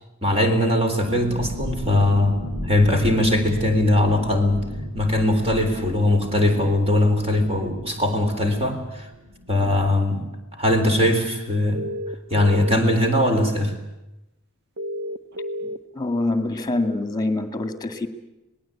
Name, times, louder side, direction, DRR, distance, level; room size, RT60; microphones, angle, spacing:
voice 1, 0.2-4.7 4.9-9.1 9.5-10.3 10.6-11.8 12.3-13.8, left 1 dB, 25° right, 5 dB, 4.0 m, -20 dB
sound 1, 1.0-10.4 10.7-10.8 11.1-11.4, equal, 85° right, 5.6 m, -35 dB
sound 2, 11.7-12.7 14.8-15.8, equal, 50° right, 1.0 m, -30 dB
voice 2, 15.9-18.1, left 2 dB, 15° left, 9 dB, 2.1 m, -25 dB
26.5 x 19.5 x 8.6 m, 0.94 s
head